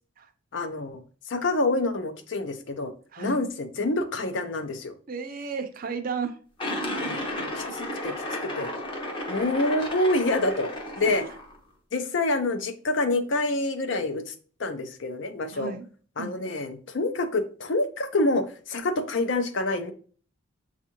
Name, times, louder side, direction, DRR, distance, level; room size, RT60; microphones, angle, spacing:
voice 1, 0.5-1.0 1.3-2.9 3.2-4.9 6.9-8.1 8.4-8.7 9.3-11.2 11.9-14.3 14.6-15.7 16.2-19.9, left 2 dB, 60° left, 8 dB, 0.5 m, -27 dB
voice 2, 3.1-3.5 5.1-6.4 9.1-9.2 11.0-11.3 15.5-15.8 16.2-16.3, right 5 dB, 45° right, 7 dB, 0.5 m, -34 dB
sound 1, 6.6-11.6, left 1 dB, 25° left, 0.7 m, -33 dB
7.0 x 2.4 x 2.9 m, 0.42 s
head